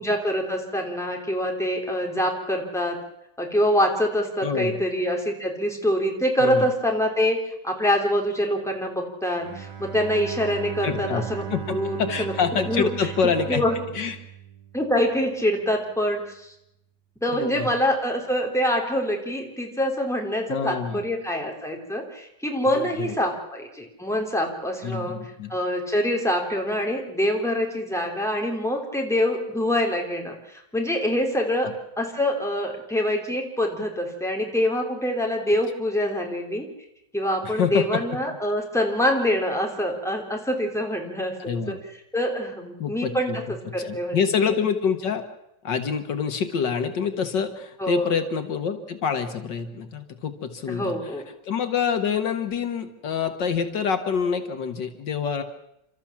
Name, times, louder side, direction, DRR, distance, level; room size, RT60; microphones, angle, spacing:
voice 1, 0.0-3.0 3.4-7.4 7.6-12.3 12.7-12.9 13.5-13.8 14.7-16.5 17.2-25.2 25.5-31.7 32.0-36.6 37.1-41.7 42.1-43.4 43.7-44.2 44.5-44.6 47.8-48.1 50.7-51.2, equal, ahead, 0 dB, 3.2 m, -25 dB
voice 2, 4.4-4.8 6.4-6.7 10.8-11.2 11.5-13.6 13.9-14.2 17.3-17.7 20.5-21.1 22.8-23.1 24.8-25.5 31.6-31.7 37.4-38.0 41.4-41.8 42.8-43.4 43.7-45.2 45.6-55.4, left 6 dB, 80° left, 8 dB, 2.1 m, -26 dB
Bowed string instrument, 9.4-15.3, right 9 dB, 75° right, 2.5 m, -37 dB
29.5 x 13.5 x 7.4 m, 0.81 s
omnidirectional pair, 1.9 m